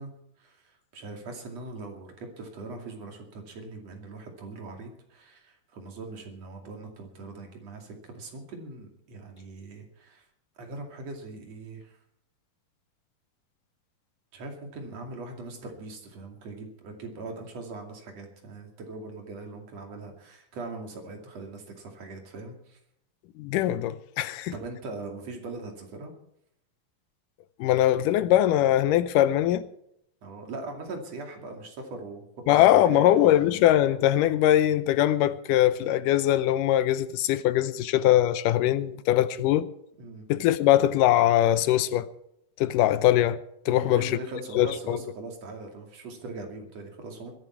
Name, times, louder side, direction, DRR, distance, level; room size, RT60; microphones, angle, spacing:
voice 1, 0.0-10.2 10.6-12.0 14.3-22.8 24.5-26.1 30.2-32.3 32.5-33.1 40.0-40.3 43.7-47.3, right 3 dB, 50° right, 3.5 m, -41 dB
voice 2, 23.4-24.5 27.6-29.6 32.5-39.7 40.3-42.1 42.6-43.4 43.7-44.2 44.6-45.0, left 13 dB, 80° left, 2.3 m, -22 dB
22.0 x 10.5 x 4.6 m
omnidirectional pair, 3.9 m